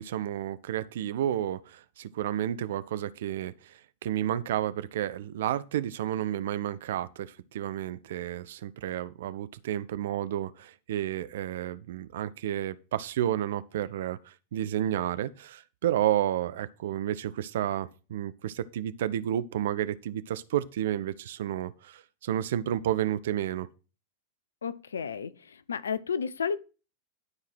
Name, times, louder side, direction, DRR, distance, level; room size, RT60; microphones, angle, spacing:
voice 1, 0.0-23.7, right 11 dB, 60° right, 0.6 m, -31 dB
voice 2, 24.6-26.6, left 6 dB, 70° left, 0.6 m, -32 dB
12.0 x 4.8 x 6.1 m
figure-of-eight pair, 90°, 0 cm